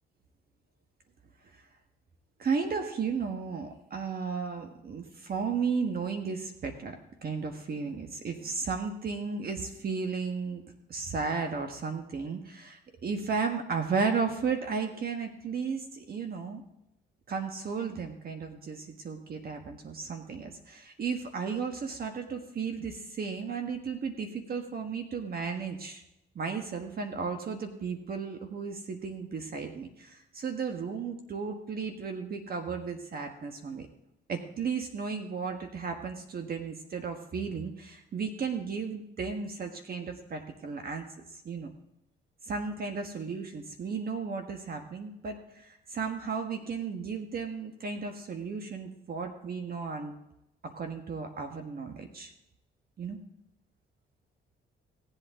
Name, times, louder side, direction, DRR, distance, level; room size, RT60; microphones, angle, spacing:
voice 1, 2.4-7.0 7.2-10.6 10.9-16.6 17.3-26.0 26.3-33.9 34.3-41.7 42.5-50.1 50.6-52.3 53.0-53.2, right 5 dB, 50° right, 5 dB, 1.5 m, -34 dB
17.5 x 8.3 x 3.7 m, 0.84 s
cardioid pair, 90°, 20 cm